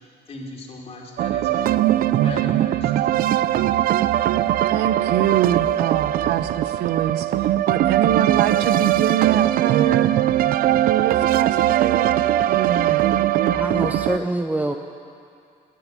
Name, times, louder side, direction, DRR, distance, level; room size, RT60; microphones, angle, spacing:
voice 1, 0.3-1.9 2.1-2.9, left 2 dB, 35° left, -1 dB, 3.2 m, -37 dB
sound 1, 1.2-14.2, right 12 dB, 60° right, 0.5 m, -20 dB
voice 2, 4.7-10.1 10.9-12.1 12.5-13.0, right 11 dB, 85° right, 10 dB, 0.8 m, -24 dB
voice 3, 13.5-14.7, right 1 dB, 10° right, 5 dB, 0.7 m, -25 dB
15.5 x 9.6 x 9.3 m, 2.4 s
cardioid pair, 110°, 17 cm